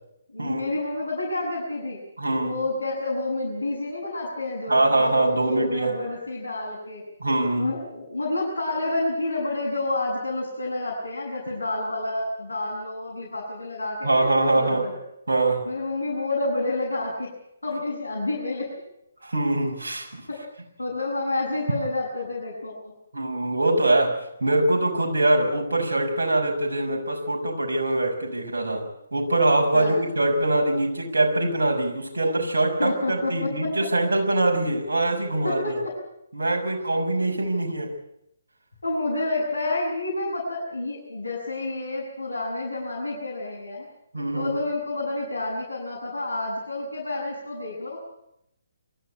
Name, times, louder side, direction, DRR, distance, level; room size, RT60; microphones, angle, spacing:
voice 1, 0.3-2.0 2.4-7.0 7.6-15.0 15.7-17.3 17.6-18.7 20.3-20.4 20.8-22.9 29.7-30.0 32.8-33.9 35.4-35.7 38.8-43.9 44.3-48.0, left 2 dB, 75° left, -4 dB, 7.4 m, -29 dB
voice 2, 2.2-2.5 4.7-5.9 7.2-7.7 14.0-14.9 15.3-15.7 19.2-20.2 23.1-35.8 36.3-37.9 44.1-44.6, right 2 dB, 65° right, 1 dB, 6.3 m, -23 dB
23.0 x 14.5 x 10.0 m, 0.80 s
figure-of-eight pair, 140°, 0 cm